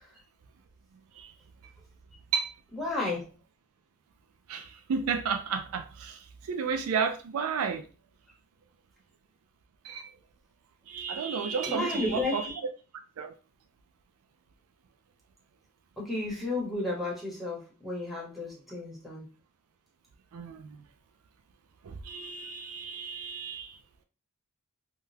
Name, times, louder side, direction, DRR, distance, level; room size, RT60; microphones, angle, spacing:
voice 1, 2.7-3.2 11.7-12.4 16.0-19.3, left 2 dB, ahead, -5 dB, 1.1 m, -32 dB
voice 2, 4.5-6.2 6.5-7.8 9.8-10.1 10.9-12.5 13.2-13.3 20.3-20.8 21.8-23.7, right 6 dB, 70° right, 6 dB, 0.4 m, -32 dB
3.6 x 2.2 x 2.7 m, 0.35 s
head